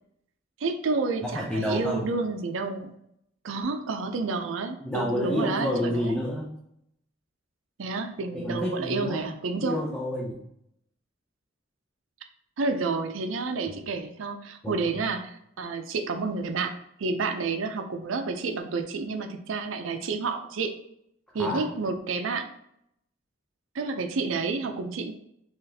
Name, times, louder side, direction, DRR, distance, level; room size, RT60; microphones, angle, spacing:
voice 1, 0.6-3.0 3.4-6.2 7.8-9.8 12.6-15.3 15.6-16.7 17.0-20.7 21.3-22.5 23.7-25.1, right 4 dB, 80° right, 6 dB, 0.5 m, -30 dB
voice 2, 1.2-2.1 4.8-6.6 8.3-9.3 9.6-10.4 14.6-15.1 21.3-21.7, left 1 dB, 5° left, -3 dB, 0.5 m, -30 dB
4.0 x 3.0 x 2.7 m, 0.75 s
head